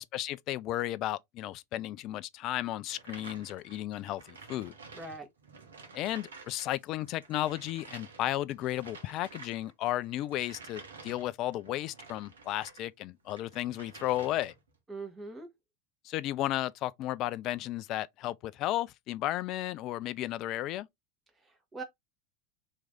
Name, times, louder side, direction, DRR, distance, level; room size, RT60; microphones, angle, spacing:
voice 1, 0.0-4.7 5.9-14.5 16.0-20.9, left 14 dB, 50° left, 0.3 m, -34 dB
sound 1, 2.9-6.7 7.0-12.9 13.2-14.7, right 4 dB, 80° right, 0.9 m, -51 dB
voice 2, 4.9-5.3 14.9-15.5 21.4-21.8, right 3 dB, 20° right, 1.2 m, -42 dB
3.0 x 2.7 x 3.5 m
figure-of-eight pair, 80°, 0 cm